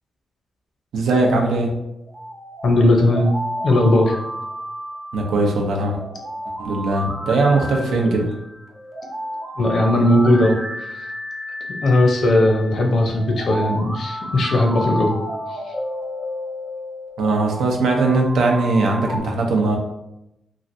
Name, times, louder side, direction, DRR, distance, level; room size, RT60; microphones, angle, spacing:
voice 1, 0.9-1.7 5.1-6.0 6.6-8.3 17.2-19.8, right 2 dB, 80° right, 1 dB, 0.6 m, -19 dB
sound 1, 2.0-19.2, equal, 25° right, 0.6 m, -32 dB
voice 2, 2.6-3.3 3.6-4.2 8.1-8.2 9.6-10.5 11.8-15.1, left 1 dB, 55° left, 1 dB, 0.6 m, -17 dB
3.1 x 2.4 x 2.6 m, 0.86 s
cardioid pair, 125°, 0 cm